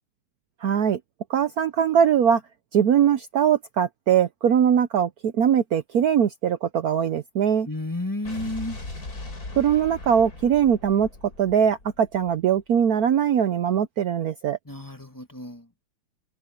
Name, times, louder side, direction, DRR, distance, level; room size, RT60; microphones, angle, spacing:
voice 1, 0.6-1.0 1.3-2.4 2.7-7.7 9.6-11.1 11.4-14.6, right 8 dB, 65° right, 1.1 m, -21 dB
voice 2, 7.6-8.8 14.7-15.7, left 1 dB, 10° left, 2.1 m, -32 dB
Explosion, 8.2-12.6, left 2 dB, 50° left, 4.8 m, -39 dB
omnidirectional pair, 2.0 m